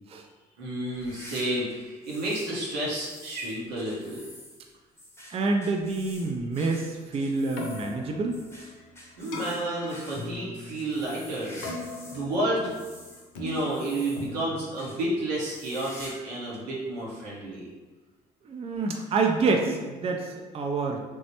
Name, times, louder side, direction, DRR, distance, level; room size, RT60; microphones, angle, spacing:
voice 1, 0.6-4.2 9.2-11.7 12.1-12.7 13.4-17.7, right 1 dB, 80° right, -5 dB, 0.8 m, -31 dB
sound 1, 0.9-2.6 2.9-12.3 12.6-14.4 14.8-15.0 15.4-16.3 16.5-16.6 17.4-17.5 18.7-18.8, left 1 dB, 10° left, 0.8 m, -48 dB
voice 2, 5.3-8.4 18.4-21.0, right 3 dB, 30° right, 2 dB, 0.4 m, -27 dB
Keyboard (musical), 7.4-15.6, left 2 dB, 80° left, 0.5 m, -40 dB
3.2 x 2.0 x 2.8 m, 1.3 s
hypercardioid pair, 50°, 21 cm